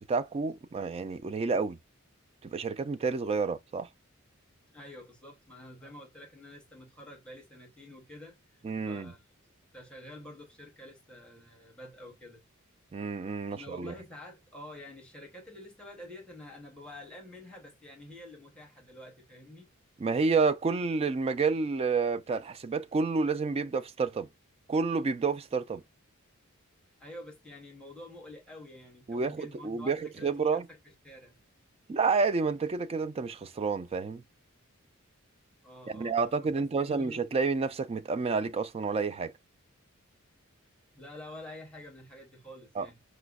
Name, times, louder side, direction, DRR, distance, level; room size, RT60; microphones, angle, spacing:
voice 1, 0.1-1.8 2.4-3.9 8.6-9.1 12.9-13.9 20.0-24.3 24.7-25.8 29.1-30.7 31.9-34.2 35.9-39.3 42.8-42.9, right 4 dB, 30° right, 0.3 m, -29 dB
voice 2, 4.7-8.4 8.9-9.3 9.7-12.4 13.5-19.7 27.0-31.4 35.6-37.2 40.9-43.0, left 1 dB, 5° left, 0.9 m, -48 dB
4.9 x 2.0 x 2.3 m
head